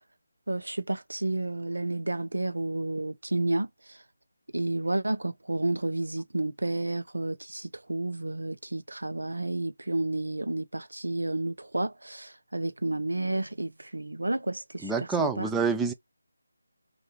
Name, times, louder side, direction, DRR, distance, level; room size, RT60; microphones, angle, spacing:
voice 1, 0.5-3.7 4.5-15.5, right 2 dB, 75° right, 0.6 m, -31 dB
voice 2, 14.8-15.9, right 5 dB, 5° right, 0.3 m, -27 dB
2.4 x 2.4 x 2.9 m
figure-of-eight pair, 160°, 0 cm